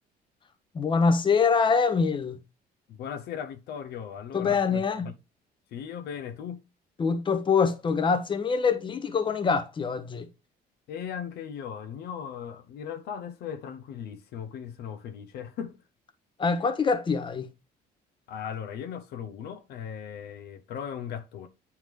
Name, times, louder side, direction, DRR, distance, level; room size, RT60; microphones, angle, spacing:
voice 1, 0.7-2.4 4.3-5.1 7.0-10.3 16.4-17.5, left 5 dB, 30° left, 0.8 m, -24 dB
voice 2, 2.9-5.1 5.7-6.7 10.9-15.8 18.3-21.5, left 8 dB, 70° left, 0.6 m, -38 dB
9.0 x 3.6 x 3.1 m
cardioid pair, 110°, 17 cm